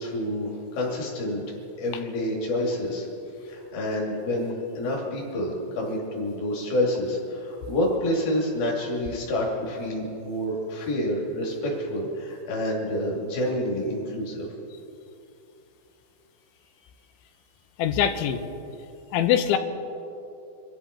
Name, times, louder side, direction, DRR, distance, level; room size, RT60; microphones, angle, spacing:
voice 1, 0.0-1.4 1.8-3.1 3.4-14.5, left 1 dB, 55° left, -3 dB, 4.4 m, -28 dB
voice 2, 17.8-18.4 19.1-19.6, left 10 dB, 85° left, 8 dB, 3.3 m, -22 dB
25.0 x 13.5 x 4.2 m, 2.7 s
omnidirectional pair, 5.3 m